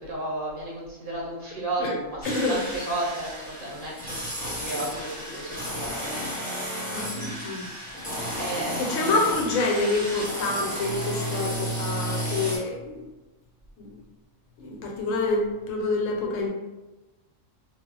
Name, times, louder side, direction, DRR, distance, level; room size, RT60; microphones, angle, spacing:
voice 1, 0.0-6.0 6.3-6.4 8.4-9.2, right 1 dB, 50° right, -5 dB, 0.8 m, -33 dB
voice 2, 2.2-2.6 6.9-7.7 8.2-8.4 8.9-13.0 13.8-14.0 14.6-16.5, left 3 dB, 90° left, 0 dB, 1.0 m, -27 dB
sound 1, 2.2-12.6, right 1 dB, 10° left, 0.8 m, -33 dB
2.3 x 2.0 x 3.7 m, 1.1 s
omnidirectional pair, 1.3 m